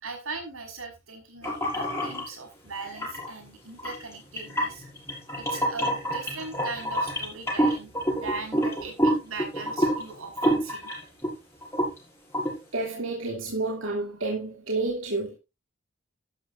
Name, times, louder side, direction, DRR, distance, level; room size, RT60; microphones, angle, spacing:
voice 1, 0.0-4.8 5.4-10.9, right 3 dB, 90° right, 5.1 m, -39 dB
sound 1, 1.4-2.2 2.9-3.3 3.8-11.3 11.6-12.0 12.3-12.5, right 1 dB, 15° left, 6.3 m, -27 dB
voice 2, 12.7-15.4, right 2 dB, 65° right, 2.8 m, -30 dB
12.5 x 12.5 x 2.6 m
head